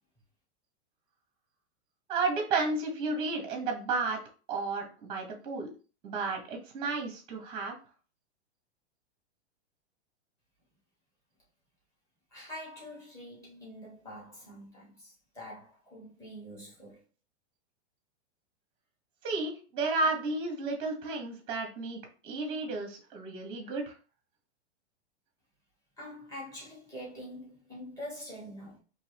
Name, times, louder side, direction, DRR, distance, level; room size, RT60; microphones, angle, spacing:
voice 1, 2.1-4.2 4.5-5.7 6.0-7.8 19.2-23.9, right 3 dB, 15° right, 1.0 m, -32 dB
voice 2, 12.3-17.0 26.0-28.8, equal, 10° left, 1.4 m, -45 dB
4.3 x 2.9 x 3.4 m
supercardioid pair, 165°, 35 cm